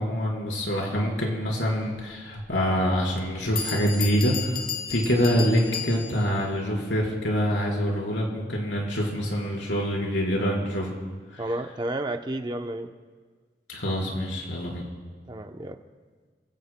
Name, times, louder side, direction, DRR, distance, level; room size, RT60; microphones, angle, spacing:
voice 1, 0.0-4.6 4.9-11.0 11.3-11.4 13.7-14.8, equal, 90° left, -2 dB, 4.4 m, -25 dB
Bell, 3.2-3.3 3.6-6.4, left 6 dB, 50° left, 1.5 m, -33 dB
voice 2, 11.4-12.9 15.3-15.8, right 1 dB, 25° right, 6 dB, 0.7 m, -31 dB
28.0 x 17.0 x 2.2 m, 1.5 s
head